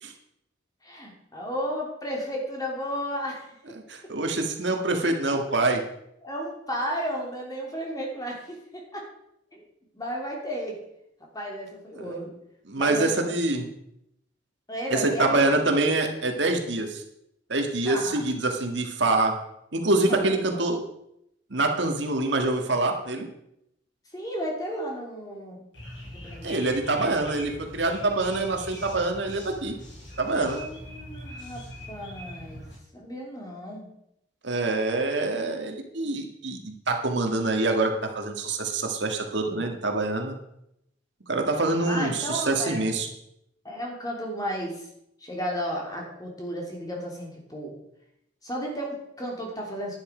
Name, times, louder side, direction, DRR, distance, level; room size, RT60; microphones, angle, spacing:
voice 1, 0.8-3.5 6.2-9.0 9.5-9.7 9.9-10.8 11.3-12.3 12.7-13.4 14.7-15.7 17.9-18.2 20.0-20.4 20.7-20.8 24.1-25.6 26.0-26.6 30.2-32.6 32.9-33.9 41.8-42.8 43.6-44.9 45.2-47.7 48.4-50.0, equal, 20° left, -1 dB, 3.0 m, -33 dB
voice 2, 3.9-5.8 12.0-12.2 12.7-13.7 14.9-17.0 17.5-19.3 19.7-20.8 21.5-23.3 26.4-29.7 30.2-30.6 34.4-40.4 41.3-43.1, right 2 dB, 70° right, 3 dB, 1.8 m, -25 dB
sound 1, 25.7-32.8, equal, 70° left, 4.7 m, -42 dB
11.0 x 9.8 x 5.0 m, 0.79 s
head